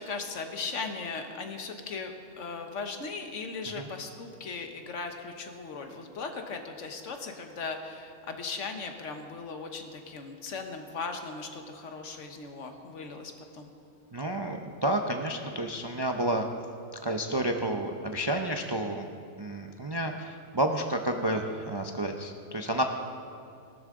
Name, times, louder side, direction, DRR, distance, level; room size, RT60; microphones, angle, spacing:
voice 1, 0.0-13.7, left 4 dB, 65° left, 5 dB, 1.4 m, -38 dB
voice 2, 14.1-16.4 17.0-19.1 19.4-22.8, right 1 dB, 35° right, 3 dB, 0.4 m, -30 dB
17.5 x 12.5 x 3.7 m, 2.5 s
omnidirectional pair, 1.4 m